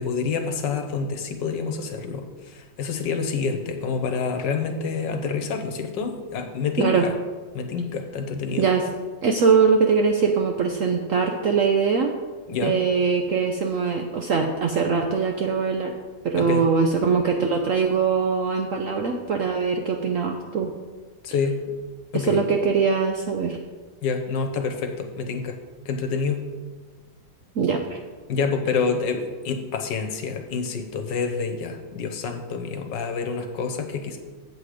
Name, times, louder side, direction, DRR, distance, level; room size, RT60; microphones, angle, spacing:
voice 1, 0.0-2.3 2.8-7.1 7.5-8.7 12.5-12.7 16.4-16.6 21.2-21.6 22.1-22.4 24.0-25.6 25.9-26.5 28.3-34.2, left 5 dB, 70° left, 5 dB, 1.5 m, -27 dB
voice 2, 8.6-8.9 9.2-12.2 12.6-15.9 16.2-20.7 22.1-23.6 27.6-28.0, right 5 dB, 75° right, 3 dB, 0.7 m, -22 dB
7.9 x 7.5 x 4.9 m, 1.4 s
omnidirectional pair, 2.1 m